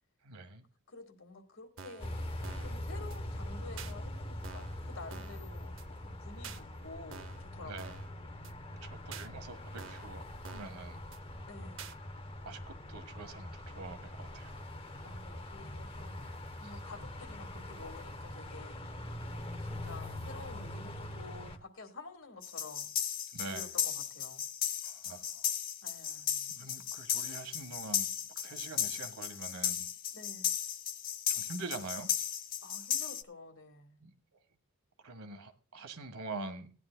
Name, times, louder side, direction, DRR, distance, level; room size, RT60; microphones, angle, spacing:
voice 1, 0.2-0.6 7.6-7.9 8.8-11.1 12.4-14.6 23.3-23.7 24.8-25.5 26.5-28.1 28.3-29.9 31.3-32.1 34.0-34.1 35.0-36.7, right 3 dB, 85° right, 8 dB, 1.5 m, -45 dB
voice 2, 0.9-2.2 2.6-8.0 11.5-11.9 15.0-16.2 16.6-18.9 19.6-22.9 23.4-24.5 25.8-26.5 30.1-30.5 32.6-34.0, left 3 dB, 60° left, 6 dB, 1.8 m, -50 dB
sound 1, 1.8-2.1 2.4-2.8 3.1-3.2 3.8-3.9 4.4-4.8 5.1-5.4 5.8-5.9 6.4-6.6 7.1-7.4 7.8-8.1 8.4-8.5 9.1-9.3 9.8-10.1 10.4-10.8 11.1-11.2 11.8-12.0, right 6 dB, 55° right, 0.7 m, -47 dB
sound 2, 2.0-21.6, left 1 dB, 25° left, 0.9 m, -43 dB
sound 3, 22.4-33.2, left 9 dB, 40° left, 0.6 m, -35 dB
17.5 x 10.5 x 2.2 m, 0.34 s
head